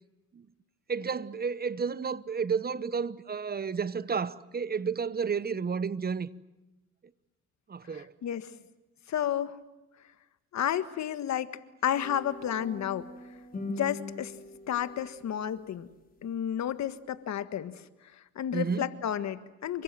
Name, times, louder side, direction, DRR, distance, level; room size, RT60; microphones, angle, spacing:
voice 1, 0.9-6.3 7.7-8.1 18.5-18.9, right 6 dB, 30° right, 1.0 m, -31 dB
voice 2, 7.9-8.6 9.1-9.6 10.5-11.5 11.8-13.1 13.7-14.3 14.7-15.9 16.2-17.8 18.1-19.8, left 10 dB, 65° left, 1.6 m, -31 dB
sound 1, 11.9-15.3, left 2 dB, 30° left, 5.9 m, -42 dB
28.5 x 24.5 x 7.7 m
cardioid pair, 90°, 30 cm